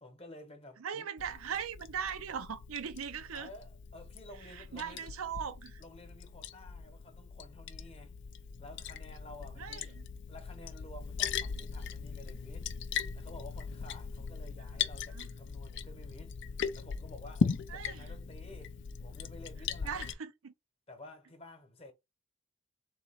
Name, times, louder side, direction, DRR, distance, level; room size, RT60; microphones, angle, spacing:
voice 1, 0.0-1.1 3.3-5.1 5.8-8.1 8.6-10.0 10.3-20.1 20.9-21.9, left 1 dB, 30° left, 1.0 m, -52 dB
voice 2, 0.8-3.5 4.5-5.8 9.6-9.8 15.1-15.3 17.7-18.2 19.8-20.5, right 7 dB, 85° right, 0.5 m, -39 dB
Liquid, 1.2-20.1, left 6 dB, 60° left, 0.4 m, -39 dB
3.8 x 2.8 x 4.2 m
head